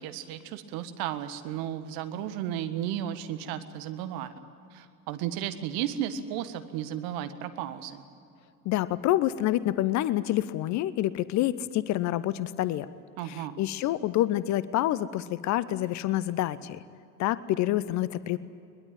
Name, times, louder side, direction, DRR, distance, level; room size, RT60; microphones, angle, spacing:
voice 1, 0.0-4.4 4.7-8.0 13.2-13.6, right 10 dB, 50° right, 10 dB, 1.7 m, -34 dB
voice 2, 8.6-12.9 13.2-16.8 17.2-18.4, left 14 dB, 35° left, 17 dB, 0.7 m, -27 dB
22.0 x 21.0 x 9.0 m, 2.6 s
figure-of-eight pair, 70°, 47 cm